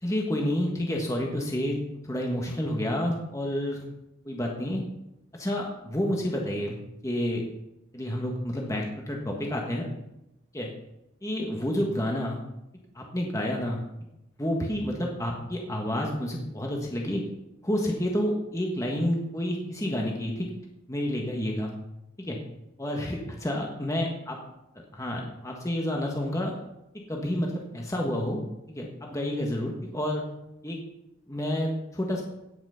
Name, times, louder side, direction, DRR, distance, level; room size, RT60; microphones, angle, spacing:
voice 1, 0.0-3.8 4.2-4.8 5.3-6.8 7.0-7.4 7.9-9.9 10.5-10.7 11.2-12.4 12.9-13.8 14.4-17.2 17.6-20.5 20.9-21.7 22.2-22.4 22.8-24.4 24.9-26.5 27.1-28.4 28.7-30.2 30.6-30.8 31.3-32.2, left 1 dB, 15° left, 0 dB, 1.5 m, -29 dB
17.0 x 6.0 x 5.7 m, 0.88 s
head